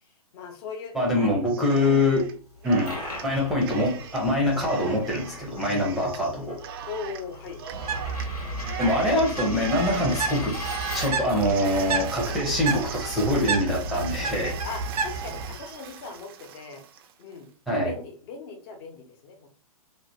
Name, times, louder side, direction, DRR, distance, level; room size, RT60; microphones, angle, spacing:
voice 1, 0.3-1.4 1.8-2.1 6.9-7.6 14.6-16.8 17.2-17.5 17.8-19.5, left 5 dB, 35° left, 4 dB, 0.7 m, -39 dB
voice 2, 0.9-2.2 2.6-2.9 3.2-6.5 8.8-10.5 10.9-14.6 17.7-17.9, left 1 dB, ahead, -4 dB, 0.7 m, -24 dB
Cheering, 1.5-2.3 2.6-17.1, right 10 dB, 40° right, 0.4 m, -39 dB
Coin (dropping), 2.5-11.4, left 3 dB, 80° left, 1.3 m, -40 dB
Bird, 7.7-15.5, right 3 dB, 80° right, 0.7 m, -31 dB
2.9 x 2.1 x 2.7 m, 0.39 s
figure-of-eight pair, 125°, 19 cm